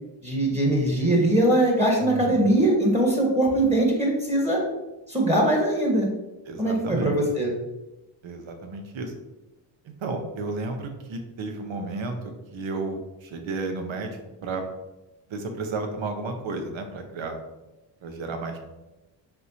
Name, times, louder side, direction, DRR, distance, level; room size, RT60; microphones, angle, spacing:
voice 1, 0.2-4.6 5.1-6.1 6.6-7.5, right 1 dB, 15° right, -1 dB, 1.4 m, -21 dB
voice 2, 2.0-2.5 6.4-7.2 8.2-9.1 10.0-14.6 15.3-17.4 18.0-18.6, right 3 dB, 70° right, 5 dB, 0.9 m, -32 dB
4.3 x 3.5 x 2.8 m, 1.0 s
cardioid pair, 70°, 49 cm